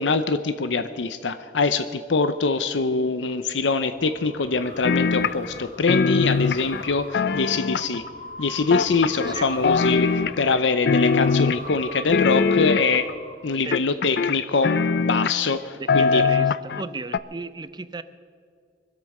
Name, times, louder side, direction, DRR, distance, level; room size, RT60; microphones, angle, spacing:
voice 1, 0.0-8.0 8.4-13.1 13.4-16.2, left 4 dB, 90° left, 11 dB, 0.7 m, -24 dB
sound 1, 3.9-13.7, equal, 35° left, 2.3 m, -40 dB
sound 2, 4.8-5.6 5.9-8.1 8.7-9.4 9.6-10.6 10.9-11.8 12.1-13.1 13.7-15.5 15.9-16.8 17.1-17.2, left 5 dB, 60° left, 0.4 m, -22 dB
voice 2, 15.8-18.0, right 3 dB, 25° right, 13 dB, 0.5 m, -35 dB
24.0 x 8.4 x 6.5 m, 2.2 s
head